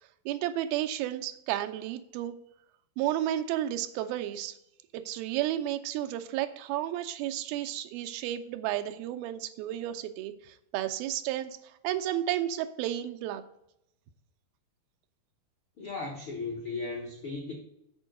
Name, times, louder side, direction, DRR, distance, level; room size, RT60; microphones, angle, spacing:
voice 1, 0.3-2.3 3.0-4.6 4.9-11.6 11.8-13.4, right 12 dB, 90° right, 7 dB, 2.4 m, -32 dB
voice 2, 15.8-17.5, left 3 dB, 75° left, -2 dB, 1.1 m, -36 dB
7.0 x 4.5 x 6.4 m, 0.79 s
omnidirectional pair, 4.3 m